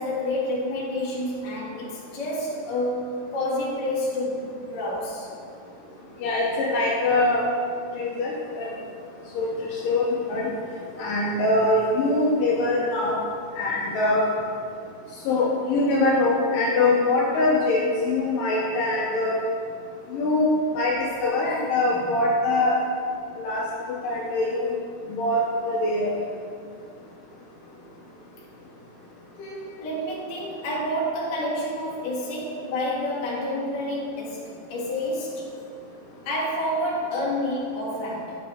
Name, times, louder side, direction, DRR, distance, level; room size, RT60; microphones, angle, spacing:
voice 1, 0.0-5.3 21.8-22.2 29.4-34.4 34.7-35.5 36.2-38.4, left 1 dB, 45° left, -6 dB, 1.5 m, -29 dB
voice 2, 6.2-7.4 8.0-8.7 9.4-10.5 11.0-13.2 13.6-14.3 15.3-19.3 20.1-22.8 23.4-23.6 24.0-24.8 25.1-26.1, left 2 dB, 75° left, -4 dB, 2.2 m, -23 dB
10.5 x 6.2 x 3.5 m, 2.4 s
omnidirectional pair, 4.4 m